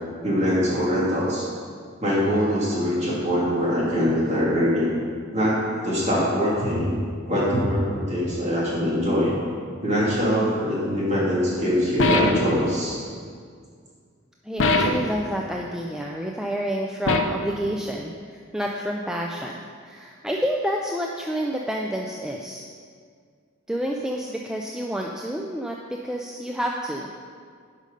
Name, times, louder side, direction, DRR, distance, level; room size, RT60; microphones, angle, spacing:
voice 1, 0.2-1.5 2.0-4.9 5.3-6.9 7.3-9.4 9.8-13.0, equal, 35° right, -6 dB, 2.5 m, -23 dB
sound 1, 12.0-12.6 14.6-15.2 17.1-17.5, left 2 dB, 70° left, 0.6 m, -21 dB
voice 2, 14.4-22.6 23.7-27.1, equal, 5° right, 0 dB, 0.4 m, -29 dB
11.5 x 5.3 x 5.3 m, 2.1 s
head